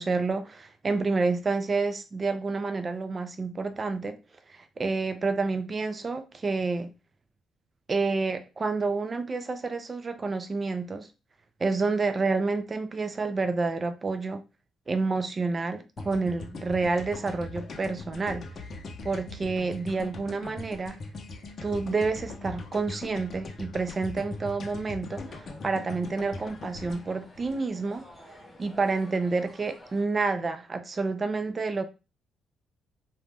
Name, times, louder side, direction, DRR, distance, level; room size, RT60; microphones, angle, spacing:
voice 1, 0.0-4.2 4.5-6.9 7.9-11.1 11.6-14.4 14.9-18.5 19.0-21.0 21.6-28.0 28.6-31.8, right 3 dB, 35° right, 0.4 m, -29 dB
sound 1, 16.0-28.2, left 3 dB, 45° left, 0.7 m, -41 dB
sound 2, 25.1-30.0, left 1 dB, 10° left, 1.0 m, -52 dB
2.5 x 2.2 x 3.3 m
cardioid pair, 90°, 0 cm